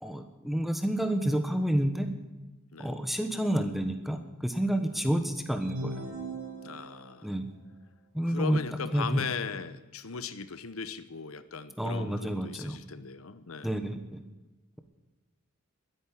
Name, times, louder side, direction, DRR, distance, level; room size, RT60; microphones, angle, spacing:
voice 1, 0.0-2.1 2.8-6.1 7.2-7.5 8.1-8.6 8.9-9.3 11.8-12.8 13.6-14.2, right 1 dB, ahead, 7 dB, 1.2 m, -29 dB
sound 1, 5.6-7.2, right 2 dB, 55° right, 5.3 m, -39 dB
voice 2, 6.6-7.3 8.2-13.8, left 5 dB, 80° left, 14 dB, 0.9 m, -38 dB
12.5 x 10.5 x 9.8 m, 1.1 s
head